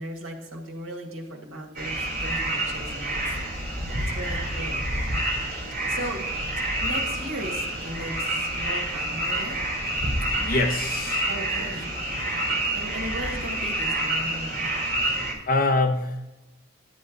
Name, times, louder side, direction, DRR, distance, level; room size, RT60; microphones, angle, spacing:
voice 1, 0.0-3.3 4.0-4.9 5.8-6.3 6.8-9.6 11.3-12.5 12.7-14.7, right 1 dB, 75° right, 0 dB, 2.1 m, -37 dB
sound 1, 1.7-15.3, right 1 dB, 40° right, 3.7 m, -28 dB
voice 2, 10.4-11.3 11.6-11.7 15.5-16.2, left 2 dB, 45° left, 3 dB, 1.1 m, -24 dB
10.5 x 7.8 x 4.0 m, 1.0 s
head